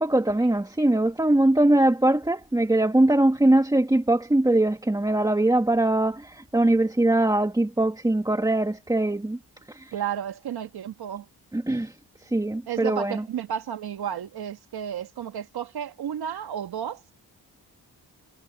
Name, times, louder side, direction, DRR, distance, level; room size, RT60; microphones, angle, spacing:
voice 1, 0.0-9.4 9.7-9.9 11.5-11.9 12.2-13.2, right 1 dB, 10° right, 2.0 m, -22 dB
voice 2, 9.9-11.3 12.7-17.1, right 9 dB, 75° right, 1.7 m, -32 dB
cardioid pair, 105°, 38 cm